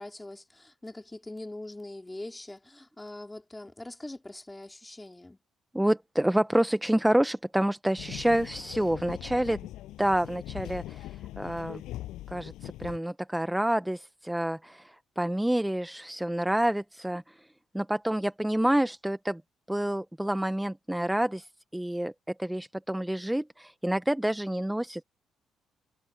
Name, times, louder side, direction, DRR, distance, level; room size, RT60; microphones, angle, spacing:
voice 1, 0.0-5.4, left 2 dB, 10° left, 3.5 m, -42 dB
voice 2, 5.7-9.6 10.0-11.1 11.4-11.8 12.3-17.3 17.7-19.4 19.7-21.5 21.7-22.1 22.4-25.0, right 1 dB, 5° right, 0.8 m, -28 dB
sound 1, 8.0-13.0, left 15 dB, 90° left, 7.7 m, -41 dB
cardioid pair, 90°, 0 cm